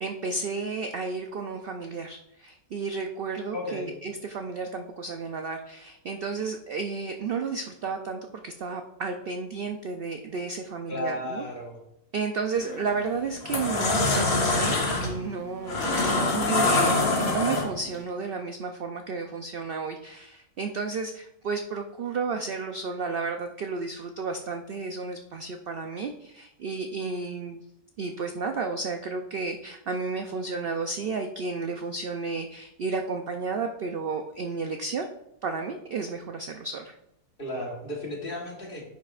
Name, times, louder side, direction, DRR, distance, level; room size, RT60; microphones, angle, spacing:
voice 1, 0.0-11.4 12.1-27.6 28.0-35.1 35.4-36.9, right 4 dB, 80° right, 5 dB, 0.5 m, -32 dB
voice 2, 3.5-3.9 10.9-11.8 37.4-38.9, left 1 dB, 35° left, -1 dB, 1.4 m, -34 dB
sound 1, 12.6-12.8 13.3-18.0, left 2 dB, 60° left, 1.9 m, -24 dB
10.0 x 5.6 x 2.4 m, 0.81 s
omnidirectional pair, 1.6 m